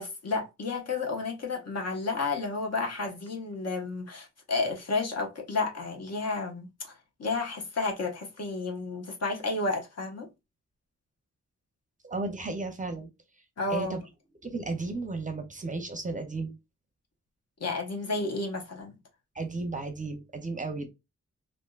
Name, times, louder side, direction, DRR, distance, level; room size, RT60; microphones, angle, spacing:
voice 1, 0.0-6.9 7.2-10.3 13.6-14.0 17.6-19.0, left 3 dB, 60° left, 1.0 m, -31 dB
voice 2, 12.0-13.1 13.7-14.0 14.4-16.5 19.3-20.9, right 3 dB, 25° right, 0.5 m, -34 dB
3.5 x 2.5 x 2.3 m
wide cardioid pair, 175°, 29 cm